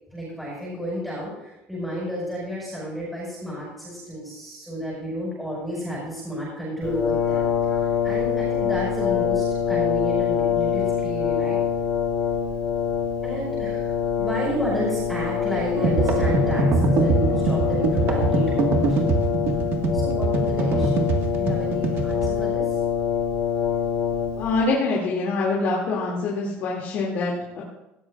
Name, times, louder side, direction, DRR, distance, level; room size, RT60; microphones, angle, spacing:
voice 1, 0.1-7.5 8.0-11.6 13.2-19.0 19.9-21.1 21.4-22.8, equal, ahead, -7 dB, 5.3 m, -31 dB
Brass instrument, 6.8-24.6, left 8 dB, 25° left, 3.6 m, -25 dB
sound 1, 15.7-22.3, right 3 dB, 55° right, 1.7 m, -23 dB
voice 2, 24.4-27.6, left 3 dB, 55° left, -4 dB, 2.5 m, -25 dB
17.5 x 13.0 x 2.5 m, 0.93 s
cardioid pair, 160°, 5 cm